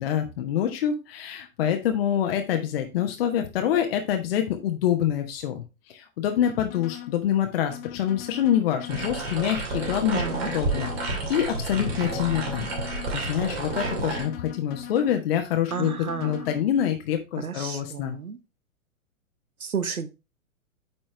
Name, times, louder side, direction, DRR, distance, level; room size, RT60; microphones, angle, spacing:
voice 1, 0.0-12.7 13.1-18.2, left 10 dB, 45° left, 5 dB, 1.1 m, -26 dB
sound 1, 6.4-7.2 7.7-9.2 9.7-11.2 11.7-13.2 13.7-15.2 15.7-16.6, left 13 dB, 20° left, 0.8 m, -40 dB
sound 2, 8.9-14.2, right 2 dB, 45° right, 2.7 m, -30 dB
voice 2, 10.1-10.5 15.7-16.5 17.4-18.4 19.6-20.1, right 6 dB, 80° right, 12 dB, 1.0 m, -32 dB
9.0 x 4.4 x 3.2 m, 0.27 s
figure-of-eight pair, 110°, 42 cm